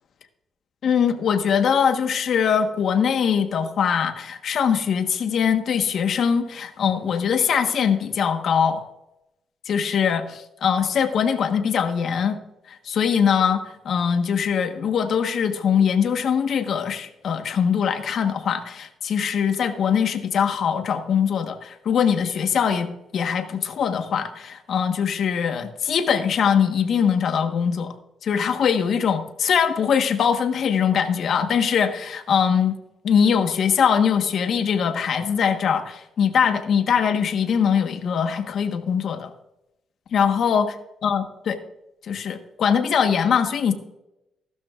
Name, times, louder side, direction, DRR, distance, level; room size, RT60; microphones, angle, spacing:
voice 1, 0.8-8.8 9.6-12.4 12.7-27.9 28.2-32.8 33.0-39.3 40.1-40.7 41.0-41.6 42.0-43.7, left 7 dB, 60° left, 7 dB, 1.3 m, -22 dB
15.5 x 12.5 x 2.5 m, 0.88 s
cardioid pair, 90°, 0 cm